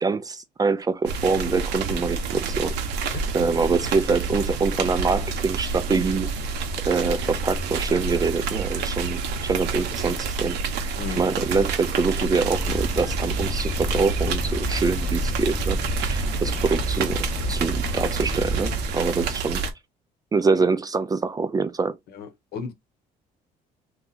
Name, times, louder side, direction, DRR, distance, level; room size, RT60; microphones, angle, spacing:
voice 1, 0.0-6.3 6.8-19.6 20.3-22.0, right 4 dB, 20° right, 0.3 m, -25 dB
sound 1, 1.0-19.7, right 4 dB, 80° right, 0.7 m, -28 dB
sound 2, 12.5-18.9, left 1 dB, 20° left, 0.7 m, -30 dB
voice 2, 22.1-22.7, left 5 dB, 70° left, 0.9 m, -35 dB
2.7 x 2.3 x 3.9 m
cardioid pair, 110°, 17 cm